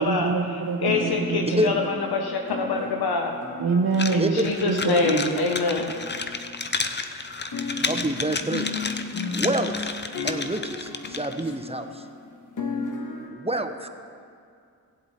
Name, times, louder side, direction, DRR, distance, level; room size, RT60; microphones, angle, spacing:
voice 1, 0.0-1.7 3.6-4.3 4.7-5.3 7.8-8.1, right 4 dB, 65° right, -1 dB, 1.0 m, -25 dB
sound 1, 0.6-7.0 7.5-13.3, left 4 dB, 50° left, 1.5 m, -35 dB
voice 2, 0.8-3.4 4.1-5.9, left 3 dB, 70° left, 2 dB, 1.0 m, -25 dB
sound 2, 3.9-11.4, left 4 dB, 30° left, 0.7 m, -32 dB
voice 3, 7.9-8.7 9.3-9.9 10.2-12.0 13.3-13.9, right 2 dB, 15° right, 6 dB, 0.8 m, -27 dB
17.5 x 7.9 x 4.3 m, 2.3 s
cardioid pair, 50°, 39 cm